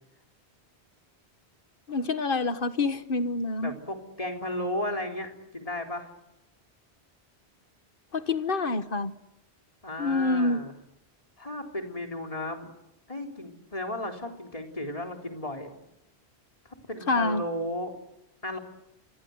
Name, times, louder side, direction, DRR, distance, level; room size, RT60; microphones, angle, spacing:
voice 1, 1.9-3.7 8.1-9.1 10.0-10.6 17.1-17.4, left 3 dB, 55° left, 12 dB, 1.5 m, -27 dB
voice 2, 3.6-6.1 9.8-10.7 11.4-12.7 13.1-15.7 16.7-17.9 18.4-18.6, left 1 dB, 30° left, 3 dB, 3.9 m, -34 dB
29.5 x 25.0 x 8.0 m, 0.88 s
omnidirectional pair, 1.1 m